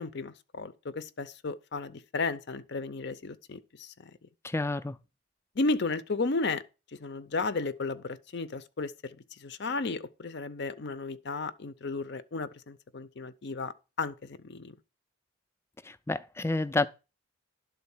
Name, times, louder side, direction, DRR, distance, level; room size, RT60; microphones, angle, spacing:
voice 1, 0.0-4.1 5.6-6.6 6.9-14.7, left 3 dB, 55° left, 0.6 m, -34 dB
voice 2, 4.4-5.0 15.8-16.9, left 2 dB, 10° left, 0.4 m, -29 dB
11.5 x 3.9 x 7.1 m
head